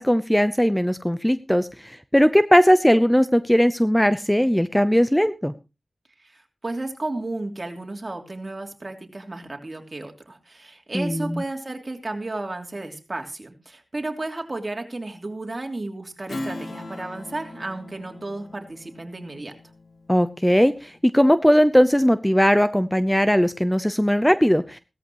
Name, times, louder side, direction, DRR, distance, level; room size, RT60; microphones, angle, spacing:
voice 1, 0.0-5.5 10.9-11.4 20.1-24.8, equal, 5° left, 13 dB, 0.7 m, -19 dB
voice 2, 6.2-19.6, right 2 dB, 45° right, 3 dB, 3.1 m, -33 dB
Strum, 16.3-21.2, left 2 dB, 75° left, 2.4 m, -39 dB
17.0 x 13.5 x 3.0 m, 0.28 s
wide cardioid pair, 50°, 0 cm